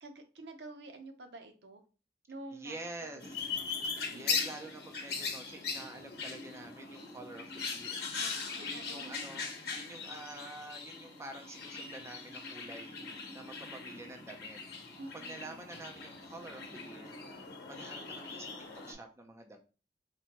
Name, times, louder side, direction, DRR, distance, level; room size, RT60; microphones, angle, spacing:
voice 1, 0.0-1.8 2.3-3.8 4.1-4.5 8.1-9.2 15.0-15.6, right 2 dB, 70° right, 5 dB, 0.7 m, -49 dB
voice 2, 2.5-3.4 4.1-8.1 8.6-9.5 9.7-14.6 15.1-19.6, right 2 dB, 15° right, 3 dB, 0.4 m, -48 dB
sound 1, 3.2-18.9, left 5 dB, 60° left, 0.9 m, -40 dB
4.4 x 2.6 x 2.8 m, 0.34 s
head